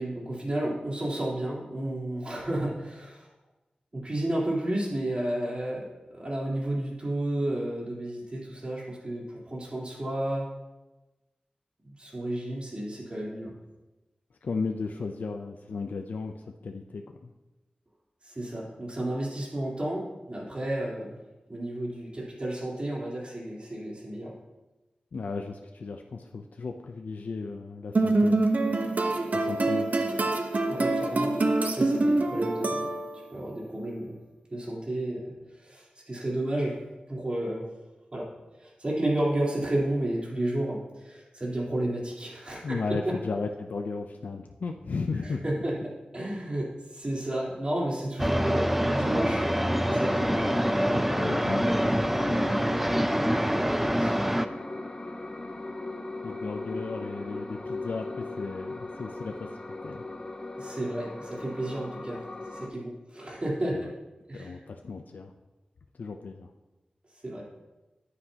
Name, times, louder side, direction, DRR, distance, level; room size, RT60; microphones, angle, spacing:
voice 1, 0.0-3.3 3.9-10.5 11.8-13.6 18.2-21.2 21.5-24.3 30.7-31.3 31.6-32.9 33.3-34.2 34.5-36.7 37.1-37.7 38.1-38.3 38.6-42.8 45.2-51.2 52.4-52.7 53.9-54.4 60.5-62.2 62.5-63.9 64.3-64.6 67.2-67.4, right 1 dB, 40° right, -5 dB, 3.8 m, -32 dB
voice 2, 14.4-17.3 25.1-28.4 29.3-29.9 42.6-45.4 51.2-52.1 56.2-59.5 59.8-60.0 63.7-63.9 64.3-65.3 66.0-66.5, left 4 dB, 90° left, 3 dB, 0.6 m, -35 dB
sound 1, 27.9-33.3, right 2 dB, 65° right, 1.0 m, -25 dB
sound 2, 48.2-54.5, equal, 5° right, 0.6 m, -26 dB
sound 3, 49.0-62.7, left 2 dB, 30° left, 1.3 m, -37 dB
14.5 x 10.0 x 2.9 m, 1.1 s
wide cardioid pair, 80°, 3 cm